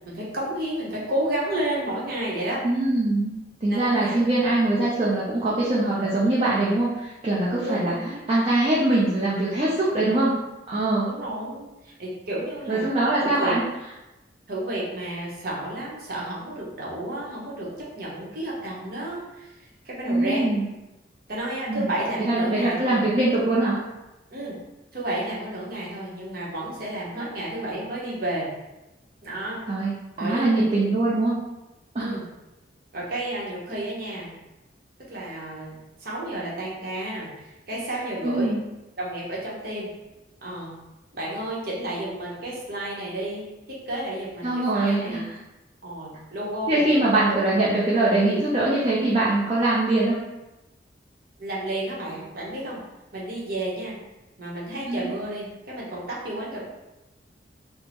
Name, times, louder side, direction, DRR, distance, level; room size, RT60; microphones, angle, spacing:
voice 1, 0.0-2.6 3.7-4.2 5.9-6.1 7.6-8.2 11.1-12.9 13.2-13.6 14.5-17.7 17.9-19.5 19.8-20.5 21.3-23.0 24.3-24.5 24.9-28.5 29.2-29.6 30.2-30.5 32.0-32.2 32.9-34.3 35.1-35.7 36.0-38.5 39.0-39.9 40.4-40.7 41.1-43.4 43.9-45.3 45.8-47.4 51.4-52.8 53.1-53.9 54.4-56.6, right 1 dB, 60° right, -5 dB, 1.0 m, -31 dB
voice 2, 2.6-3.3 3.6-7.9 8.3-10.3 10.7-11.1 12.7-13.6 20.1-20.6 21.7-21.9 22.2-23.8 29.7-29.9 30.2-31.4 31.9-32.2 38.2-38.6 44.4-45.3 46.7-50.2 54.9-55.1, right 2 dB, 35° right, -8 dB, 0.5 m, -22 dB
3.5 x 2.0 x 3.0 m, 1.0 s
head